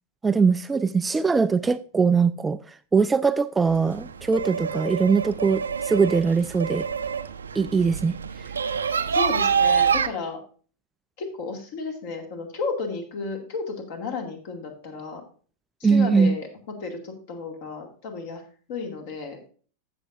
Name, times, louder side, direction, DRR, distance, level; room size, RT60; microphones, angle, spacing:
voice 1, 0.2-2.6 2.9-6.9 7.5-8.2 15.8-16.4, right 5 dB, 15° right, 0.3 m, -21 dB
sound 1, 3.6-10.1, right 6 dB, 70° right, 0.6 m, -26 dB
voice 2, 9.1-10.4 11.2-15.2 15.8-18.4 18.7-19.4, left 4 dB, 50° left, 2.3 m, -33 dB
15.0 x 6.7 x 2.6 m
figure-of-eight pair, 90°, 0 cm